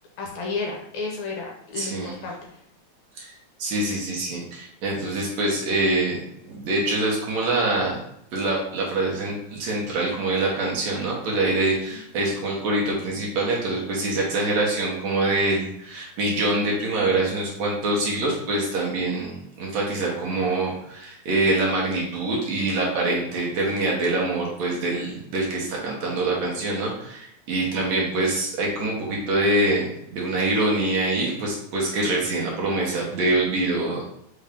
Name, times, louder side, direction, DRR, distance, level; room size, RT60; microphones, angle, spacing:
voice 1, 0.2-2.4 27.8-27.9, left 3 dB, 75° left, 0 dB, 2.3 m, -32 dB
voice 2, 1.8-2.1 3.2-3.3 3.6-6.2 6.5-8.0 8.3-34.1, right 2 dB, 70° right, -3 dB, 2.2 m, -25 dB
5.6 x 2.7 x 3.5 m, 0.74 s
omnidirectional pair, 3.4 m